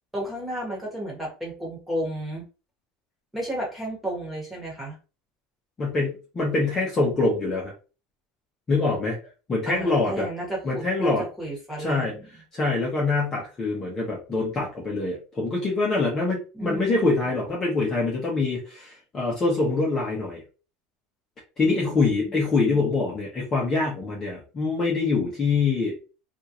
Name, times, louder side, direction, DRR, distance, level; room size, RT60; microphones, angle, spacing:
voice 1, 0.1-2.4 3.3-5.0 9.6-12.1 16.5-17.3 21.8-22.9, right 1 dB, 5° right, -3 dB, 1.4 m, -33 dB
voice 2, 5.8-7.7 8.7-9.2 9.5-10.3 10.6-11.2 11.8-12.1 12.5-20.4 21.6-25.9, left 3 dB, 20° left, -3 dB, 0.9 m, -24 dB
3.5 x 2.5 x 2.9 m, 0.33 s
cardioid pair, 160°, 2 cm